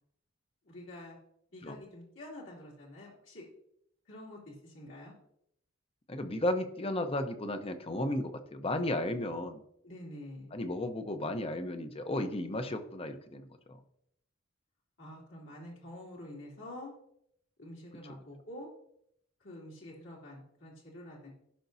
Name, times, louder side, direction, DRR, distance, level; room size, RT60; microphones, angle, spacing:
voice 1, 0.6-1.2 1.5-3.5 4.1-5.1 9.8-10.5 15.0-16.9 17.6-18.7 19.4-21.3, left 1 dB, 70° left, -5 dB, 2.9 m, -47 dB
voice 2, 6.1-9.6 10.5-13.5, left 1 dB, 30° left, 8 dB, 0.8 m, -34 dB
14.5 x 5.9 x 2.7 m, 0.73 s
head